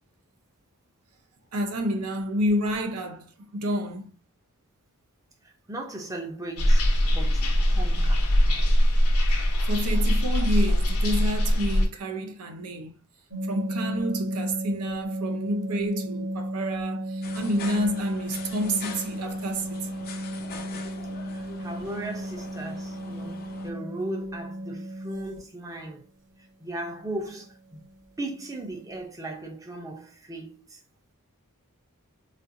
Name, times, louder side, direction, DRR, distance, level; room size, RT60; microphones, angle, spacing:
voice 1, 1.5-4.1 9.7-12.9 13.5-20.0, equal, 80° right, 0.6 m, -29 dB
voice 2, 5.4-6.8 7.1-8.2 21.3-26.0 26.6-27.8 28.2-30.8, right 2 dB, 15° right, 0.7 m, -37 dB
sound 1, 6.6-11.9, equal, 85° left, 0.9 m, -21 dB
sound 2, 13.3-25.4 27.3-27.4 27.7-27.9 28.3-28.4 28.7-29.0, equal, 55° right, 2.0 m, -34 dB
sound 3, 17.2-23.7, left 5 dB, 45° left, 0.6 m, -43 dB
4.1 x 2.5 x 2.6 m
head